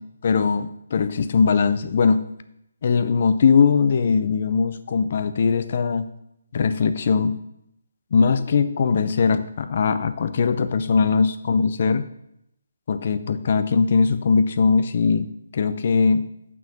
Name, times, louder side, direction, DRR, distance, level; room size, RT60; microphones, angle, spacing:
voice 1, 0.2-2.2 2.8-6.1 6.5-7.4 8.1-12.0 12.9-15.3 15.5-16.2, left 5 dB, 40° left, 11 dB, 0.6 m, -20 dB
6.8 x 6.2 x 7.1 m, 0.78 s
hypercardioid pair, 170°, 0 cm